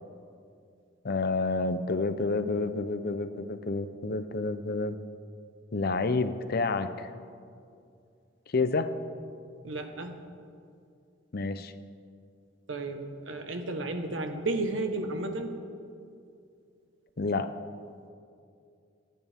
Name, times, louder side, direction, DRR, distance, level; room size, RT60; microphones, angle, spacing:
voice 1, 1.0-5.0 5.7-7.1 8.5-8.9 11.3-11.7 17.2-17.5, left 3 dB, 50° left, 11 dB, 0.6 m, -29 dB
voice 2, 9.6-10.2 12.7-15.5, right 2 dB, 80° right, 6 dB, 1.2 m, -33 dB
25.5 x 9.4 x 3.6 m, 2.4 s
head